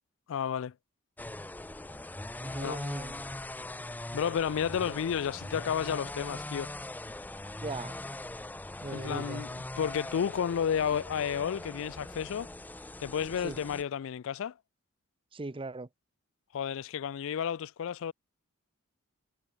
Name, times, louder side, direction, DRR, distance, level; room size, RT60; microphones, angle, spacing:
voice 1, 0.3-0.7 2.6-2.8 4.1-6.7 8.9-9.5 9.8-12.5 13.0-14.5 16.5-18.1, left 8 dB, 65° left, 0.4 m, -31 dB
sound 1, 1.2-13.8, left 1 dB, 10° left, 0.5 m, -41 dB
voice 2, 2.4-3.2 7.6-8.0 8.8-9.4 13.4-13.6 15.3-15.9, right 2 dB, 25° right, 0.8 m, -39 dB
head